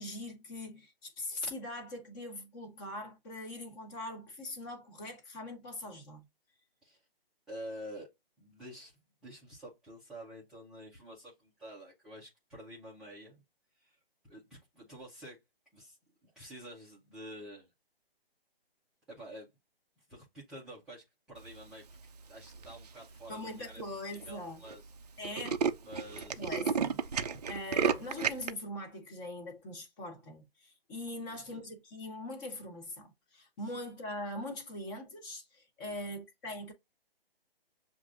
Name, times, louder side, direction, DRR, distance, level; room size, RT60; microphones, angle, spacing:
voice 1, 0.0-6.2 23.3-24.6 25.2-25.6 26.4-27.0 27.5-36.7, left 1 dB, 20° left, 1.2 m, -42 dB
voice 2, 7.5-8.1 8.4-13.4 13.7-14.0 14.2-15.4 15.7-16.0 16.2-17.7 19.1-19.5 20.0-23.8 24.2-25.2 25.8-26.7 31.2-31.7 35.8-36.2, equal, ahead, 0.7 m, -49 dB
Tools, 22.4-22.9 23.5-23.6 23.8-23.9 24.1-24.3 24.6-24.7 25.0-28.5, right 6 dB, 45° right, 0.5 m, -32 dB
7.1 x 2.6 x 2.5 m
figure-of-eight pair, 145°, 30 cm